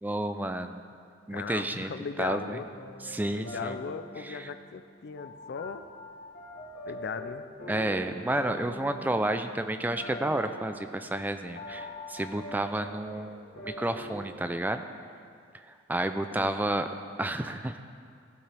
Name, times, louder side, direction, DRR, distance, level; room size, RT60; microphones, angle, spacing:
voice 1, 0.0-0.8 1.3-1.9 2.2-2.6 3.0-3.8 4.2-4.5 7.7-14.8 15.9-16.9 17.2-17.8, right 1 dB, 10° right, 8 dB, 0.3 m, -31 dB
voice 2, 1.3-2.7 3.3-5.8 6.9-7.4 16.3-16.7, left 5 dB, 60° left, 11 dB, 0.4 m, -38 dB
sound 1, 2.7-14.2, left 1 dB, 75° left, 2.5 m, -44 dB
16.0 x 7.1 x 3.4 m, 2.2 s
head